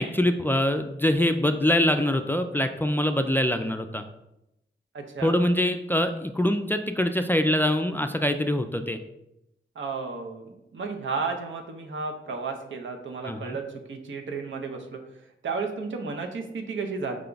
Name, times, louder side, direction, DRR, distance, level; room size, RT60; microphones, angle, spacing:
voice 1, 0.0-4.0 5.2-9.0 13.3-13.6, left 1 dB, 10° left, 7 dB, 0.3 m, -24 dB
voice 2, 4.9-5.4 9.8-15.0 15.4-17.2, right 4 dB, 70° right, 3 dB, 0.7 m, -33 dB
4.8 x 2.2 x 3.8 m, 0.86 s
cardioid pair, 50°, 20 cm